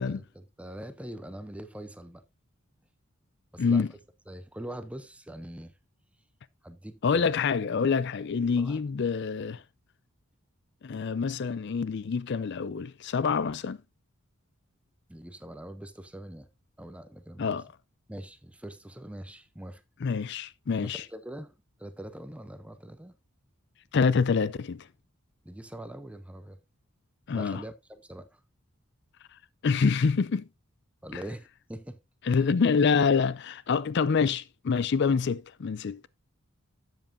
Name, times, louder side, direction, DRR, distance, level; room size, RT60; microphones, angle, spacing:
voice 1, 0.1-2.2 3.5-3.8 4.3-5.7 6.6-7.4 8.6-8.8 9.5-9.6 15.1-16.5 16.8-17.6 18.1-19.8 20.8-23.2 25.4-26.6 27.3-28.4 31.0-32.0 32.3-32.4, right 1 dB, 5° right, 0.6 m, -43 dB
voice 2, 3.6-3.9 7.0-9.6 10.8-13.8 17.4-17.7 20.0-21.0 23.9-24.9 27.3-27.6 29.6-30.5 32.3-36.0, left 5 dB, 55° left, 0.4 m, -26 dB
12.5 x 7.7 x 2.6 m
head